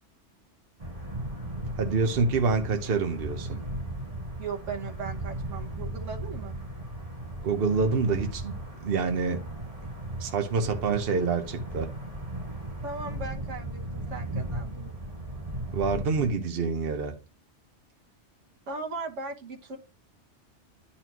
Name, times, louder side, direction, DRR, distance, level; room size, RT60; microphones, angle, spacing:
sound 1, 0.8-16.3, right 1 dB, 30° right, 1.7 m, -37 dB
voice 1, 1.8-3.6 7.4-8.5 8.8-9.4 10.2-11.9 15.7-17.2, right 4 dB, 55° right, 1.1 m, -26 dB
voice 2, 4.4-6.6 12.8-14.9 18.7-19.8, right 4 dB, 85° right, 1.5 m, -38 dB
10.5 x 4.2 x 3.0 m
omnidirectional pair, 1.2 m